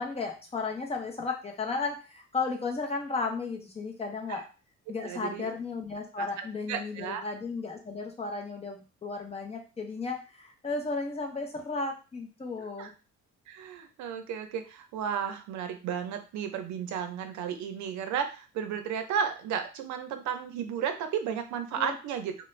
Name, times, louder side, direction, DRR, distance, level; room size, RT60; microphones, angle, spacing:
voice 1, 0.0-4.4 4.9-12.9 21.8-22.0, left 4 dB, 20° left, 2 dB, 0.6 m, -34 dB
voice 2, 5.0-5.5 6.2-7.3 12.8-12.9 13.5-22.4, right 8 dB, 80° right, 7 dB, 0.6 m, -33 dB
2.4 x 2.1 x 3.1 m, 0.33 s
cardioid pair, 120°, 29 cm